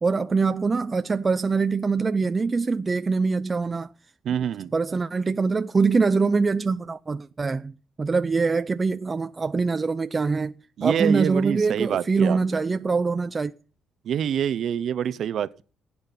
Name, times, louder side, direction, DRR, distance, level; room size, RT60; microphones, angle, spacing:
voice 1, 0.0-3.9 4.7-10.5 10.8-13.5, right 4 dB, 30° right, 0.6 m, -24 dB
voice 2, 4.2-4.7 10.8-12.6 14.0-15.6, right 9 dB, 65° right, 0.8 m, -26 dB
16.0 x 8.7 x 5.7 m
cardioid pair, 90°, 0 cm